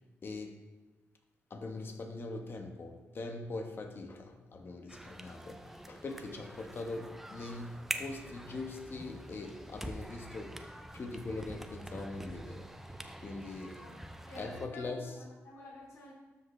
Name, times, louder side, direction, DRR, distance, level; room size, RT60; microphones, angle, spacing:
voice 1, 0.2-0.6 1.5-10.6 10.9-12.7 13.2-13.8 14.4-15.1, left 3 dB, 50° left, 4 dB, 1.2 m, -42 dB
sound 1, 4.9-14.7, right 1 dB, 5° right, 0.7 m, -45 dB
voice 2, 14.2-16.1, left 2 dB, 80° left, -3 dB, 2.9 m, -49 dB
12.5 x 5.3 x 3.3 m, 1.2 s
cardioid pair, 75°, 5 cm